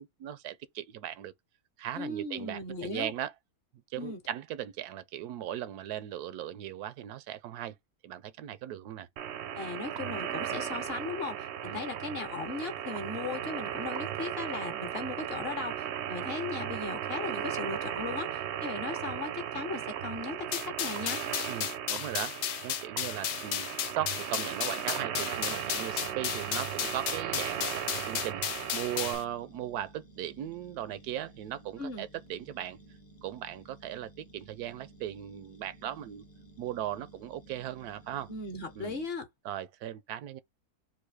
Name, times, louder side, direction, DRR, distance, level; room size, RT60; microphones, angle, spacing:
voice 1, 0.0-1.3 1.8-3.3 3.9-7.7 8.0-9.1 11.6-11.8 21.5-22.4 22.6-28.4 28.7-32.8 33.2-36.2 36.6-38.3 38.8-39.0 39.4-40.4, right 12 dB, 90° right, 1.1 m, -38 dB
voice 2, 2.0-3.1 4.0-4.2 9.5-21.2 31.8-32.1 38.3-39.3, left 3 dB, 50° left, 0.9 m, -37 dB
sound 1, 9.2-29.2, right 10 dB, 65° right, 0.7 m, -36 dB
sound 2, 20.5-29.2, left 11 dB, 80° left, 1.1 m, -34 dB
sound 3, 25.3-39.0, right 2 dB, 30° left, 0.7 m, -55 dB
3.9 x 2.6 x 4.7 m
omnidirectional pair, 1.6 m